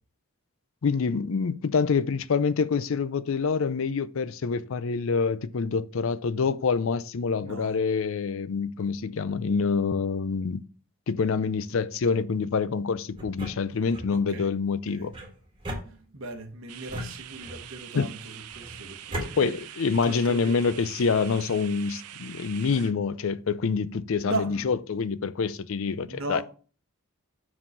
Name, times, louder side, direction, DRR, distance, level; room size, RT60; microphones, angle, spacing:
voice 1, 0.8-10.6 11.1-15.1 17.9-18.1 19.1-26.4, left 5 dB, 60° left, 0.4 m, -26 dB
voice 2, 7.4-7.8 14.1-14.5 14.9-15.1 15.8-20.7 24.2-24.8 26.1-26.4, right 2 dB, 65° right, 1.1 m, -37 dB
sound 1, 13.1-14.1 15.1-16.4 16.9-17.8 18.5-19.3, right 1 dB, 20° right, 1.4 m, -38 dB
sound 2, 16.7-22.9, right 11 dB, 85° right, 0.6 m, -44 dB
5.5 x 4.9 x 6.4 m
head